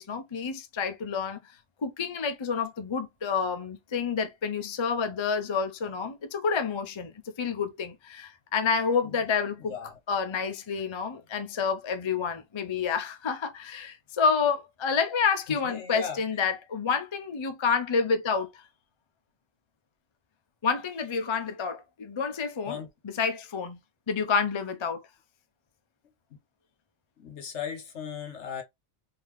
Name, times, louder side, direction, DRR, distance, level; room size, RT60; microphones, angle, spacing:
voice 1, 0.0-1.4 1.8-9.7 10.1-18.6 20.6-22.8 23.0-23.8 24.1-25.0, left 5 dB, 35° left, 0.5 m, -29 dB
voice 2, 9.6-10.0 15.5-16.2 22.7-22.9 27.2-28.6, left 7 dB, 70° left, 1.2 m, -37 dB
3.9 x 2.8 x 3.1 m
omnidirectional pair, 1.3 m